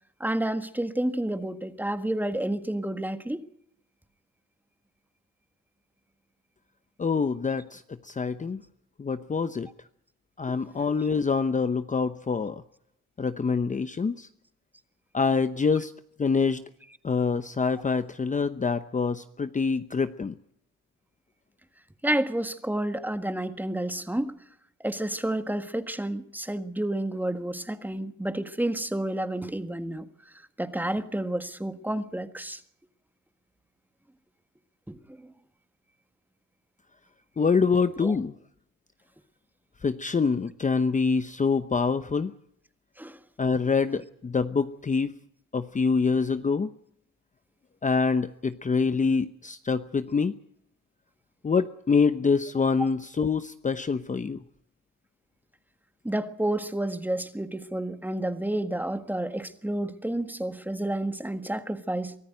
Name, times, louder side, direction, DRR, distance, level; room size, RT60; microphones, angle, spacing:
voice 1, 0.2-3.4 22.0-24.3 24.8-30.0 30.6-32.6 34.9-35.2 38.0-38.1 43.0-43.2 56.0-62.1, right 1 dB, 5° right, 1.6 m, -30 dB
voice 2, 7.0-8.6 9.0-9.7 10.4-12.6 13.2-14.3 15.1-15.9 16.2-16.6 17.0-20.3 37.4-38.3 39.8-42.3 43.4-45.1 45.5-46.7 47.8-50.3 51.4-54.4, left 5 dB, 25° left, 0.8 m, -25 dB
24.0 x 14.5 x 9.1 m
cardioid pair, 90°, 30 cm